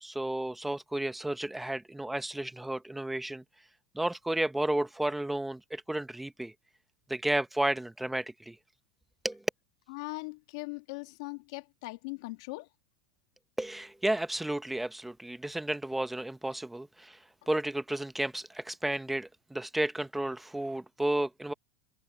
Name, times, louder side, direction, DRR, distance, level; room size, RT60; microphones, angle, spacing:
voice 1, 0.0-3.4 3.9-6.5 7.1-8.6 9.2-9.4 13.6-17.2 17.5-21.5, right 1 dB, 5° right, 0.8 m, -32 dB
voice 2, 9.9-12.7, left 26 dB, 70° left, 1.7 m, -40 dB
supercardioid pair, 130°, 3 cm